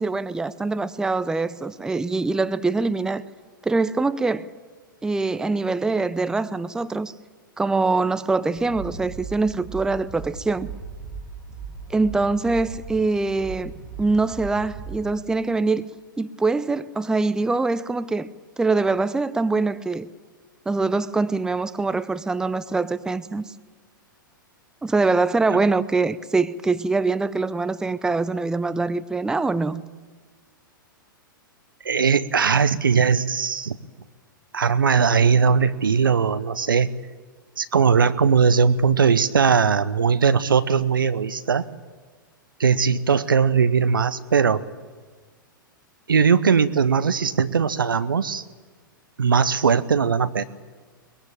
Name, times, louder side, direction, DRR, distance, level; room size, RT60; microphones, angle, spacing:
voice 1, 0.0-3.2 3.6-4.5 5.0-7.1 7.6-10.7 11.9-13.7 14.0-15.8 16.2-18.3 18.6-20.1 20.7-23.4 24.8-29.8, right 3 dB, 5° right, 0.6 m, -23 dB
sound 1, 8.5-15.1, right 5 dB, 35° right, 7.0 m, -38 dB
voice 2, 31.8-33.8 34.5-36.9 37.6-41.7 42.6-44.6 46.1-48.4 49.2-50.4, right 6 dB, 75° right, 0.9 m, -19 dB
22.0 x 21.0 x 8.8 m
figure-of-eight pair, 100°, 11 cm